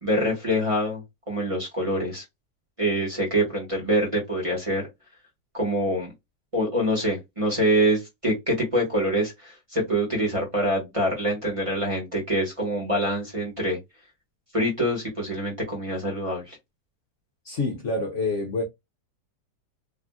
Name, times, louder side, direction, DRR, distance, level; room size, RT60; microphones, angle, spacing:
voice 1, 0.0-2.2 2.8-4.8 5.5-6.1 6.5-13.8 14.5-16.6, equal, 20° right, 1.3 m, -25 dB
voice 2, 17.4-18.6, left 3 dB, 55° left, 1.0 m, -27 dB
3.4 x 2.5 x 2.3 m
omnidirectional pair, 1.8 m